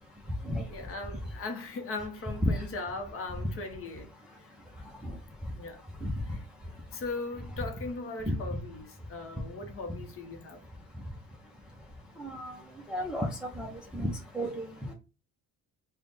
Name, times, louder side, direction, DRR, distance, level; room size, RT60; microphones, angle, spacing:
voice 1, 0.7-4.1 5.5-5.8 6.3-6.4 6.9-10.6, left 3 dB, 40° left, 0.7 m, -39 dB
voice 2, 12.2-12.5 12.9-14.9, equal, 5° right, 0.4 m, -32 dB
3.5 x 2.1 x 3.9 m
cardioid pair, 170°, 33 cm